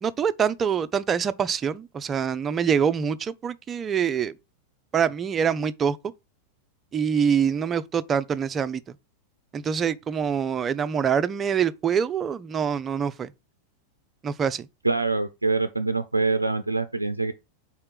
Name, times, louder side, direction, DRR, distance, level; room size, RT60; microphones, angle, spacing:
voice 1, 0.0-4.3 4.9-6.0 6.9-8.8 9.5-13.3 14.2-14.7, right 7 dB, 25° right, 0.5 m, -25 dB
voice 2, 14.8-17.3, right 3 dB, 85° right, 0.4 m, -25 dB
4.4 x 4.3 x 5.7 m
figure-of-eight pair, 90°, 0 cm